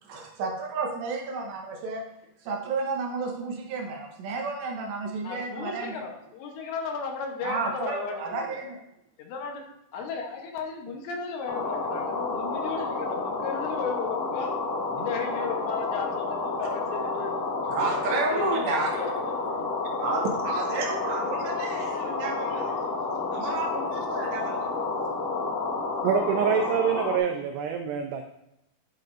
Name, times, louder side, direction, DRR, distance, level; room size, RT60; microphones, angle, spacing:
voice 1, 0.0-2.0 2.4-6.0 7.4-8.8 9.9-10.0 14.9-15.1 17.7-19.0 20.0-22.8 23.3-24.7, right 3 dB, 75° right, 1 dB, 3.1 m, -31 dB
voice 2, 5.2-8.6 9.2-9.6 9.9-14.5 15.0-19.1 19.4-19.6, left 5 dB, 75° left, 2 dB, 3.0 m, -35 dB
sound 1, 11.5-27.2, left 3 dB, 60° left, 2.6 m, -30 dB
voice 3, 26.0-28.2, right 7 dB, 90° right, 5 dB, 2.4 m, -25 dB
11.5 x 6.6 x 2.6 m, 0.85 s
omnidirectional pair, 5.5 m